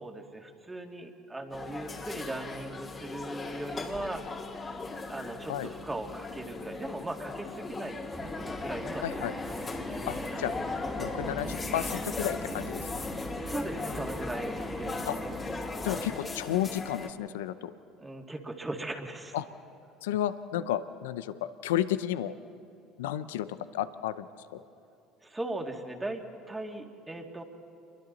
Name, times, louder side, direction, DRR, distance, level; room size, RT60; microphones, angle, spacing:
voice 1, 0.0-4.2 5.1-8.0 8.6-9.3 13.3-15.2 18.0-19.4 25.2-27.4, right 2 dB, 15° right, 3 dB, 2.3 m, -38 dB
sound 1, 1.5-17.1, left 3 dB, 30° left, 2.2 m, -38 dB
sound 2, 8.1-16.2, equal, ahead, 2.4 m, -39 dB
voice 2, 9.0-9.3 10.1-10.5 11.0-13.2 15.1-15.2 15.8-17.7 19.3-19.5 20.0-21.3 21.6-22.4 23.0-23.5 23.7-24.3 24.5-24.6, left 12 dB, 85° left, 13 dB, 0.6 m, -32 dB
28.5 x 22.5 x 4.1 m, 2.6 s
hypercardioid pair, 80°, 0 cm